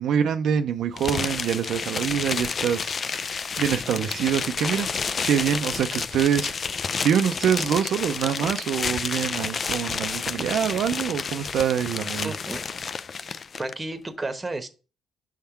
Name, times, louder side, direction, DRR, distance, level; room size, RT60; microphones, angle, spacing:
voice 1, 0.0-3.3 3.6-4.9 5.2-6.5 7.0-12.3, right 8 dB, 75° right, 0.4 m, -25 dB
sound 1, 1.0-13.7, left 5 dB, 45° left, 0.3 m, -30 dB
voice 2, 12.2-12.6 13.6-14.7, right 2 dB, 20° right, 1.0 m, -32 dB
5.5 x 3.6 x 5.6 m
cardioid pair, 90°, 0 cm